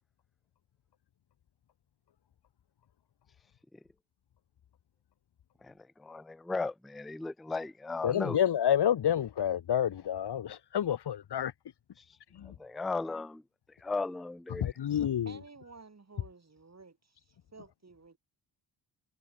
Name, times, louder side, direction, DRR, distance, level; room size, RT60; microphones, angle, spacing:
voice 1, 5.6-8.4 12.0-12.1 12.6-13.4 13.8-14.7, left 3 dB, ahead, 0.4 m, -36 dB
voice 2, 8.0-11.5 12.3-12.5 14.5-15.3, left 10 dB, 60° left, 1.1 m, -29 dB
voice 3, 15.2-18.2, right 4 dB, 35° right, 6.7 m, -53 dB
cardioid pair, 70°, 46 cm